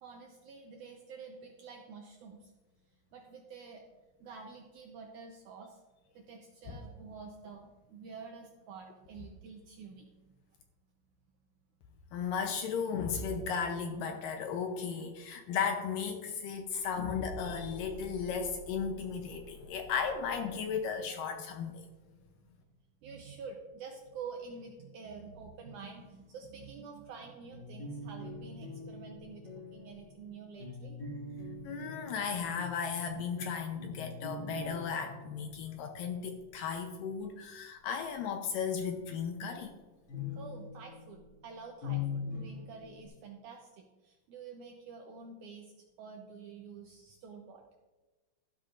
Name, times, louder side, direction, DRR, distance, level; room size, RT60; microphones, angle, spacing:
voice 1, 0.0-2.5 3.1-3.9 4.2-5.8 6.1-10.4 23.0-31.0 40.3-45.7 46.0-47.6, right 5 dB, 75° right, 1 dB, 1.8 m, -48 dB
voice 2, 12.1-21.9 31.6-39.7, left 6 dB, 75° left, 5 dB, 2.1 m, -35 dB
Car / Engine, 16.5-21.0, left 2 dB, 60° right, 2.6 m, -52 dB
sound 1, 27.5-36.6 40.1-43.1, left 4 dB, 30° left, 3.2 m, -43 dB
13.0 x 11.5 x 2.5 m, 1.2 s
omnidirectional pair, 4.5 m